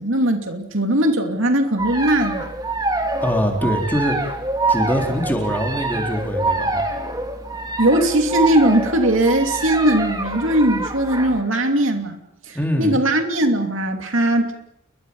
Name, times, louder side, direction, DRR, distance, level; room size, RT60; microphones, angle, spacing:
voice 1, 0.0-2.5 7.8-12.2 12.5-14.5, right 1 dB, 60° right, 5 dB, 2.9 m, -19 dB
sound 1, 1.8-11.4, right 2 dB, 20° right, 2.5 m, -25 dB
voice 2, 3.2-4.3 4.7-6.9 12.5-13.0, equal, 10° left, 1 dB, 4.1 m, -23 dB
30.0 x 23.0 x 5.6 m, 0.76 s
head